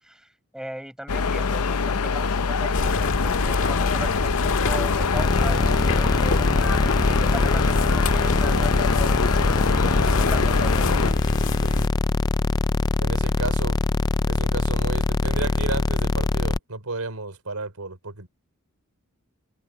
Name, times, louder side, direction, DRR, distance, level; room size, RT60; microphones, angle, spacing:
voice 1, 0.0-11.0, equal, 5° right, 6.9 m, -39 dB
sound 1, 1.1-11.1, left 5 dB, 85° left, 0.7 m, -24 dB
sound 2, 2.7-11.9, left 2 dB, 60° left, 1.8 m, -29 dB
sound 3, 5.1-16.6, left 2 dB, 20° left, 0.3 m, -23 dB
voice 2, 13.0-13.8 14.3-18.3, right 3 dB, 80° right, 3.5 m, -32 dB
head